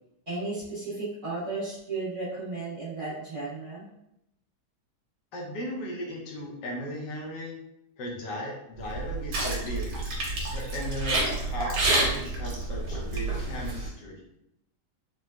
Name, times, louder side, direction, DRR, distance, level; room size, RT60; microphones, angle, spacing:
voice 1, 0.3-3.8, right 3 dB, 50° right, -11 dB, 1.2 m, -34 dB
voice 2, 5.3-7.6 8.0-10.0 10.5-14.2, equal, 80° left, -2 dB, 1.4 m, -36 dB
sound 1, 8.8-13.9, right 2 dB, 90° right, 1.4 m, -29 dB
3.8 x 2.1 x 2.2 m, 0.81 s
omnidirectional pair, 1.8 m